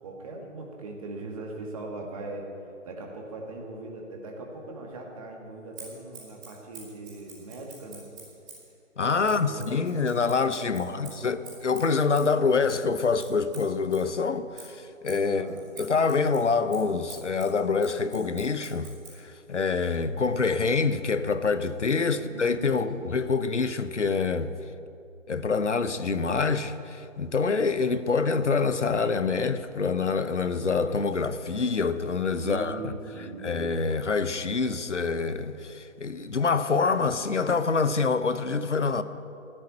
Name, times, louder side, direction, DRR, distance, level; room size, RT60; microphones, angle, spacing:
voice 1, 0.0-2.5 2.8-8.1 9.2-9.7 10.6-11.2 15.3-15.6 22.1-22.7 23.2-23.4 32.2-33.5, right 2 dB, 25° right, 2.1 m, -40 dB
Scissors, 5.7-8.7 9.2-14.1 14.5-19.2, right 4 dB, 10° right, 4.2 m, -47 dB
voice 2, 9.0-15.4 15.8-18.9 19.2-24.5 25.3-32.9 33.4-39.0, left 4 dB, 65° left, 1.0 m, -26 dB
14.5 x 9.9 x 8.7 m
figure-of-eight pair, 150°, 39 cm